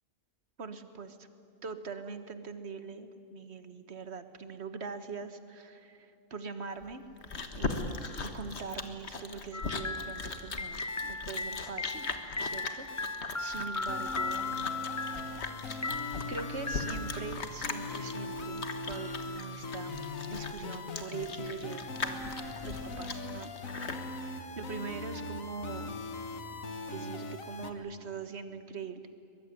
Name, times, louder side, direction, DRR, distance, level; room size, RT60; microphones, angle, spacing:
voice 1, 0.6-1.2 1.6-7.0 7.6-12.1 12.4-12.9 13.4-14.7 15.8-16.0 16.3-20.0 20.3-22.3 22.6-23.5 23.8-26.0 26.9-29.0, right 5 dB, 55° right, 10 dB, 1.6 m, -42 dB
Chewing mastication, 6.8-24.1, left 4 dB, 55° left, 1.8 m, -39 dB
sound 1, 9.5-17.4, left 3 dB, 15° left, 0.6 m, -38 dB
sound 2, 10.9-27.7, left 2 dB, 85° left, 1.9 m, -41 dB
22.5 x 21.5 x 10.0 m, 2.6 s
omnidirectional pair, 1.4 m